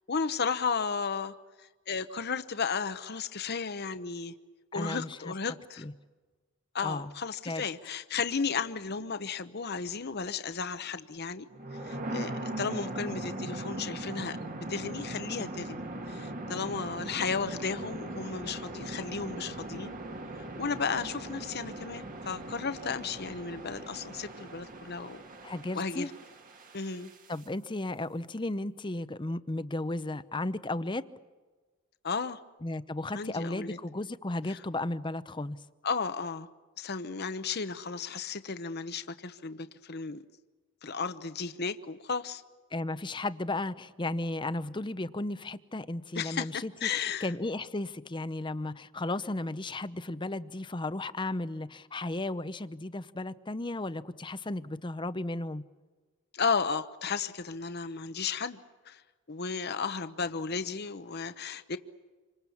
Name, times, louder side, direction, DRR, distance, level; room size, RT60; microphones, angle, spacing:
voice 1, 0.1-4.3 4.7-5.8 6.7-11.5 11.8-14.4 14.7-19.9 20.6-25.2 25.7-26.1 26.7-27.1 32.0-32.4 33.1-33.8 35.8-36.5 36.8-40.2 40.8-42.4 46.1-47.3 56.3-58.6 58.9-59.0 59.3-61.8, left 5 dB, 50° left, 11 dB, 0.9 m, -34 dB
voice 2, 4.7-5.9 6.8-7.1 7.5-7.6 25.4-26.1 27.3-31.1 32.6-35.6 42.7-55.6, left 2 dB, 20° left, 13 dB, 0.7 m, -34 dB
sound 1, 11.5-27.4, right 1 dB, 40° right, 1.8 m, -40 dB
27.5 x 25.0 x 7.2 m, 1.3 s
head